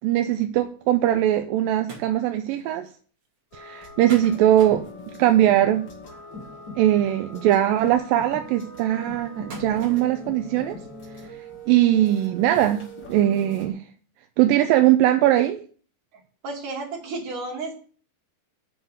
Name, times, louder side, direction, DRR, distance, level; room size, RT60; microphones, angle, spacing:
voice 1, 0.0-2.9 3.5-4.8 5.2-5.8 6.8-10.8 11.7-13.8 14.4-15.6, right 12 dB, 85° right, 7 dB, 2.4 m, -20 dB
sound 1, 1.9-2.1 2.6-2.7 2.9-3.0 4.1-5.4 7.1-7.2 9.5-10.2 10.6-10.7 11.2-11.3 11.9-12.0 12.2-12.3, right 3 dB, 40° right, 3.4 m, -41 dB
sound 2, 3.5-13.7, equal, 35° left, 2.8 m, -41 dB
voice 2, 16.1-17.7, right 3 dB, 65° right, 0 dB, 3.9 m, -33 dB
7.9 x 6.0 x 7.8 m, 0.42 s
omnidirectional pair, 3.9 m